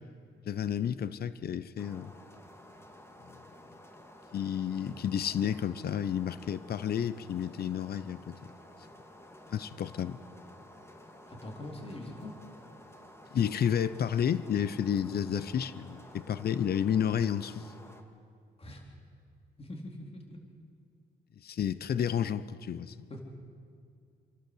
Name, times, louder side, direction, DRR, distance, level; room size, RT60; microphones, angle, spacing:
voice 1, 0.5-2.1 3.3-3.4 4.3-8.5 9.5-10.2 13.3-17.7 21.4-22.9, left 8 dB, 50° left, 16 dB, 0.8 m, -31 dB
sound 1, 1.8-18.0, left 1 dB, 15° left, 2.2 m, -53 dB
voice 2, 11.2-12.3 18.6-18.8 19.6-20.4 23.1-23.2, left 1 dB, 30° left, 1 dB, 3.8 m, -43 dB
28.5 x 11.5 x 8.0 m, 2.3 s
cardioid pair, 90°, 20 cm